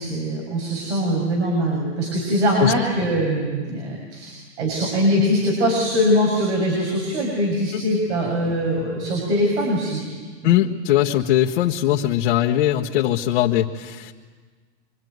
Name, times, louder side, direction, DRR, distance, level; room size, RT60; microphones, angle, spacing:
voice 1, 0.0-10.0 10.4-10.7, equal, 75° right, 0 dB, 6.9 m, -22 dB
voice 2, 10.4-14.1, left 12 dB, 60° left, -1 dB, 1.5 m, -20 dB
26.0 x 24.5 x 9.5 m, 1.5 s
supercardioid pair, 170°, 35 cm